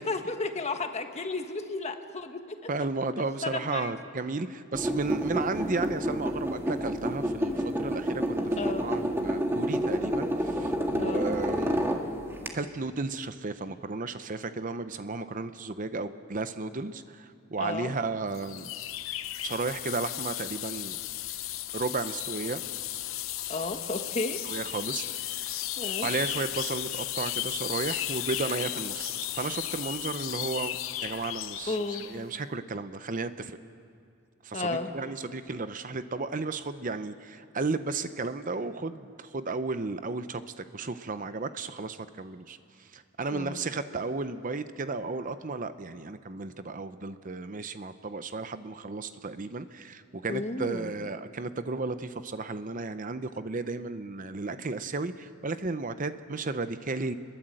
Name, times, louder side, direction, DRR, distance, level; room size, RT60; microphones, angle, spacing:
voice 1, 0.0-2.6 3.2-3.9 8.6-8.9 10.9-11.3 17.6-17.9 23.5-24.4 25.8-26.1 31.7-32.1 34.5-34.9 43.3-43.6 50.3-50.9, left 3 dB, 30° left, 6 dB, 1.4 m, -33 dB
voice 2, 2.7-11.8 12.5-18.7 19.4-21.0 21.7-22.6 24.4-25.6 26.0-30.8 31.0-31.8 32.1-33.6 34.4-57.1, right 3 dB, 40° right, 11 dB, 0.7 m, -34 dB
sound 1, 4.7-12.5, equal, 10° right, 1.8 m, -29 dB
sound 2, 18.3-32.2, left 13 dB, 70° left, 0.8 m, -35 dB
28.0 x 21.5 x 7.8 m, 2.4 s
head